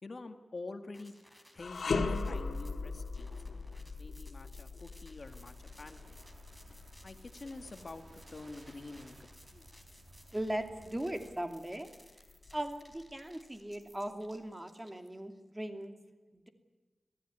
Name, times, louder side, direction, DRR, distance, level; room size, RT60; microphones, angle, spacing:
voice 1, 0.0-1.1 1.5-3.4 4.0-6.2 7.0-9.7, left 3 dB, 50° left, 8 dB, 1.8 m, -47 dB
sound 1, 0.9-15.4, equal, ahead, 3.9 m, -61 dB
sound 2, 1.6-10.8 11.2-11.4 12.3-13.2, left 4 dB, 85° left, 1.8 m, -39 dB
sound 3, 5.2-11.4, right 3 dB, 65° right, 2.1 m, -58 dB
voice 2, 10.3-11.9 12.5-15.9 16.3-16.5, right 1 dB, 15° right, 7 dB, 2.8 m, -39 dB
25.0 x 17.0 x 9.8 m, 1.3 s
wide cardioid pair, 75°, 0 cm